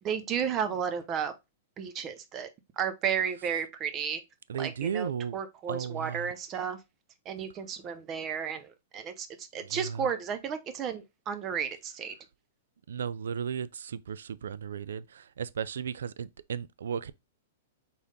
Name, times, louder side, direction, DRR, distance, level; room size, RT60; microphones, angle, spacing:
voice 1, 0.0-1.3 1.8-2.5 2.8-4.2 4.6-6.8 7.3-12.1, right 7 dB, 30° right, 0.7 m, -33 dB
voice 2, 4.5-5.4 5.7-6.3 9.6-10.1 12.9-17.1, right 7 dB, 85° right, 0.3 m, -35 dB
4.1 x 3.4 x 3.7 m
hypercardioid pair, 135°, 0 cm